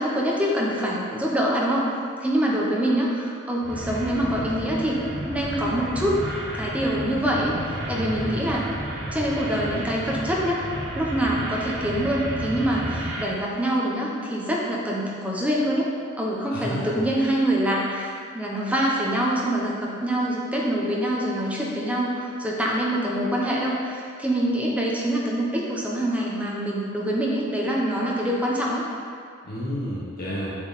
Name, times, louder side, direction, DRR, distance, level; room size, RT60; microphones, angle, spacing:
voice 1, 0.0-1.9 2.2-5.0 5.3-6.2 6.5-8.6 9.1-10.6 11.0-15.9 16.2-28.8, right 1 dB, 5° right, -4 dB, 0.9 m, -25 dB
sound 1, 3.6-13.2, right 1 dB, 65° right, 1.7 m, -32 dB
voice 2, 7.9-8.3 16.5-17.0 29.4-30.6, equal, 45° left, -6 dB, 1.1 m, -31 dB
7.2 x 4.7 x 4.1 m, 2.3 s
head